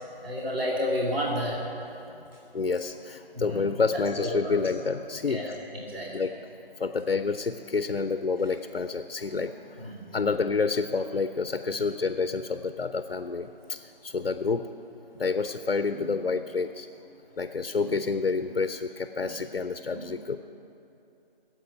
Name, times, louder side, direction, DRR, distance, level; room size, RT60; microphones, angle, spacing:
voice 1, 0.2-1.6 3.3-3.6 4.2-4.6 5.3-5.5 5.9-6.1 9.8-10.0 15.9-16.0 19.9-20.0, equal, 80° right, -4 dB, 2.8 m, -30 dB
voice 2, 2.5-5.6 6.1-6.4 6.8-14.7 15.2-16.9 17.4-20.4, left 4 dB, 80° left, 9 dB, 0.8 m, -29 dB
15.5 x 7.9 x 9.0 m, 3.0 s
figure-of-eight pair, 160°, 29 cm